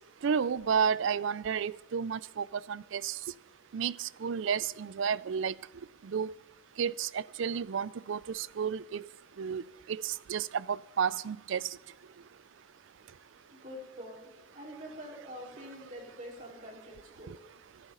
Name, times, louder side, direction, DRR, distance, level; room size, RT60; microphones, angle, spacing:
voice 1, 0.2-3.2 3.7-5.5 6.1-6.3 6.8-9.1 9.4-9.6 9.9-11.6, right 7 dB, 65° right, 0.4 m, -31 dB
voice 2, 13.5-17.3, equal, 35° right, 4.3 m, -46 dB
25.0 x 11.0 x 3.9 m
head